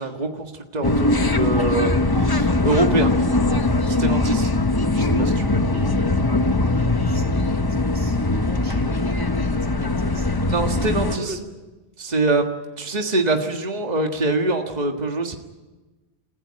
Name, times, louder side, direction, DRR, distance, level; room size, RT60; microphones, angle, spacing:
voice 1, 0.0-3.1 3.9-4.5 4.9-5.6 10.5-11.3 12.0-12.4 12.8-15.4, right 2 dB, 40° right, 3 dB, 1.8 m, -24 dB
sound 1, 0.8-11.2, left 2 dB, 20° left, 0.9 m, -21 dB
voice 2, 6.9-10.3 11.0-11.4, right 1 dB, 90° right, 1 dB, 3.8 m, -39 dB
29.0 x 15.5 x 8.8 m, 1.2 s
omnidirectional pair, 1.1 m